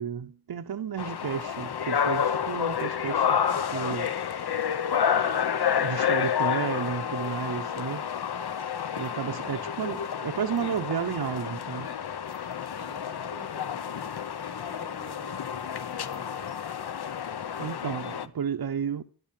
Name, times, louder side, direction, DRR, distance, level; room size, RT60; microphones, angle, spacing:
voice 1, 0.0-4.2 5.8-8.1 9.0-12.0 17.6-19.0, right 8 dB, 75° right, 0.8 m, -32 dB
sound 1, 1.0-18.3, left 8 dB, 85° left, 0.9 m, -30 dB
voice 2, 9.1-9.6 12.7-14.1 14.5-16.7, left 2 dB, 70° left, 5.5 m, -47 dB
12.0 x 11.5 x 7.4 m
wide cardioid pair, 105°, 38 cm